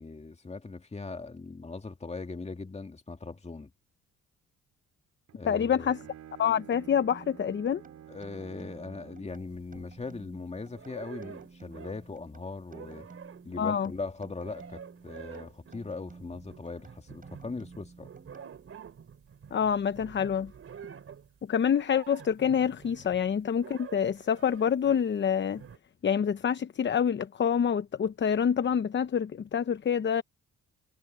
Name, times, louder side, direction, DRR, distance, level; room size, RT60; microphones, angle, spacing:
voice 1, 0.0-3.7 5.4-5.9 8.1-13.1 13.4-18.1, left 3 dB, 20° left, 2.4 m, -40 dB
Bowed string instrument, 5.3-9.4, right 10 dB, 65° right, 2.7 m, -50 dB
voice 2, 5.5-6.0 6.4-7.8 13.6-13.9 19.5-20.5 21.5-25.6 26.0-30.2, left 8 dB, 40° left, 0.8 m, -27 dB
sound 1, 6.7-18.9, right 4 dB, 25° right, 6.6 m, -53 dB
sound 2, 9.3-10.3 10.7-12.2 12.5-25.1 25.6-25.8, right 7 dB, 50° right, 3.2 m, -49 dB
cardioid pair, 90°, 30 cm